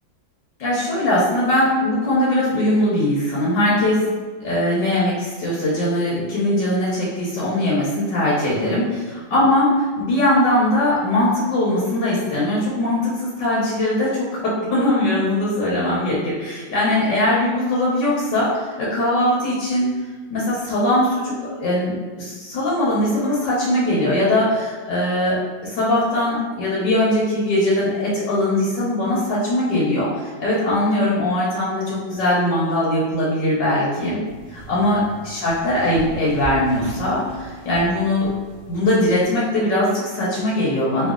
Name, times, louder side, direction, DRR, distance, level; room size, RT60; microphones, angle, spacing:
voice 1, 0.6-4.1 4.4-19.9 20.3-30.1 30.4-34.2 34.5-38.3 38.7-41.1, left 1 dB, 65° left, -6 dB, 1.5 m, -20 dB
sound 1, 34.2-39.2, right 2 dB, 70° right, 0.5 m, -38 dB
3.3 x 3.1 x 3.7 m, 1.4 s
omnidirectional pair, 2.2 m